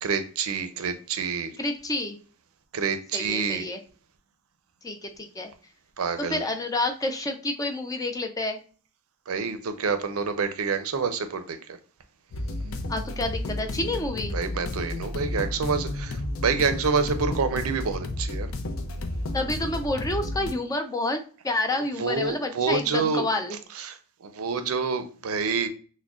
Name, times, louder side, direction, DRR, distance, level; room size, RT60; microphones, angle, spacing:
voice 1, 0.0-1.5 2.7-3.7 6.0-6.4 9.3-11.8 14.3-18.5 22.0-23.2 23.8-24.0 24.2-25.7, right 5 dB, 80° right, 0.5 m, -27 dB
voice 2, 1.6-2.2 3.1-3.8 4.8-5.5 6.3-8.6 12.9-14.4 19.3-23.6, left 2 dB, 15° left, 0.4 m, -29 dB
sound 1, 12.3-20.5, left 1 dB, 70° left, 0.5 m, -32 dB
6.0 x 2.1 x 2.3 m
head